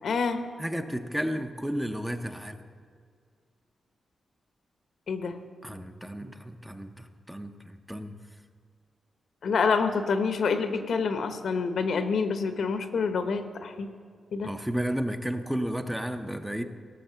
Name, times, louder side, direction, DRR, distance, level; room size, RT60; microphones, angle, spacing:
voice 1, 0.0-0.5 5.1-5.4 9.4-13.9 14.3-14.5, left 5 dB, 70° left, 8 dB, 1.0 m, -27 dB
voice 2, 0.6-2.6 5.6-8.2 14.4-16.6, equal, 5° right, 7 dB, 0.6 m, -32 dB
17.5 x 6.5 x 6.8 m, 2.1 s
wide cardioid pair, 115°, 0 cm